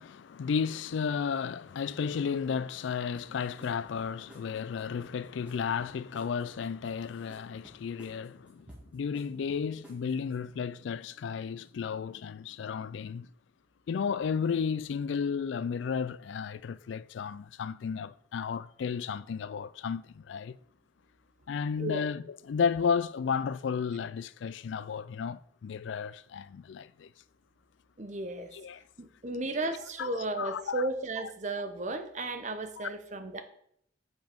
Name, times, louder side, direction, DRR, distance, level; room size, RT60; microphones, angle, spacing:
voice 1, 0.0-8.7 8.9-13.3 13.9-20.6 21.5-27.1 28.5-28.8 30.0-30.9 32.8-32.9, left 6 dB, 70° left, 0.3 m, -33 dB
sound 1, 3.1-10.5, right 1 dB, 5° right, 2.2 m, -57 dB
voice 2, 28.0-28.5 29.0-33.4, right 2 dB, 40° right, 0.8 m, -34 dB
8.2 x 5.3 x 5.2 m
head